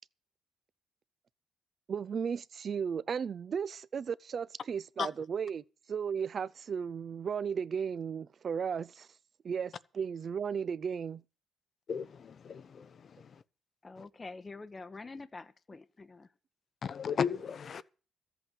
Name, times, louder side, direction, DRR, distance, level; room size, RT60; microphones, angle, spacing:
voice 1, 1.9-9.1 9.4-11.2, right 7 dB, 50° right, 0.6 m, -35 dB
voice 2, 11.9-13.3 16.8-17.8, left 7 dB, 50° left, 0.8 m, -35 dB
voice 3, 13.8-16.3, left 3 dB, 25° left, 0.9 m, -46 dB
14.0 x 8.2 x 7.4 m
cardioid pair, 90°, 0 cm